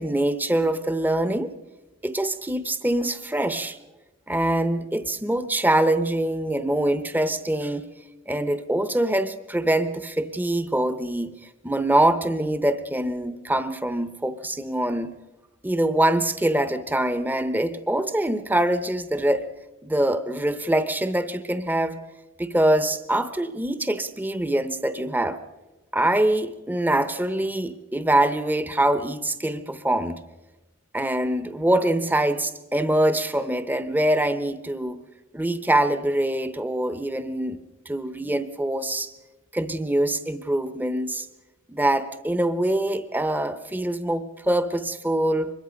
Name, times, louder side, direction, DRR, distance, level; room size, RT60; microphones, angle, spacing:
voice 1, 0.0-1.5 2.0-3.8 4.3-7.8 8.3-11.3 11.6-15.1 15.6-19.5 19.8-22.0 22.4-25.4 25.9-30.2 30.9-35.0 35.3-37.6 37.9-39.1 39.5-41.3 41.7-45.5, right 1 dB, 10° right, 11 dB, 0.8 m, -24 dB
24.0 x 21.5 x 5.2 m, 1.1 s
head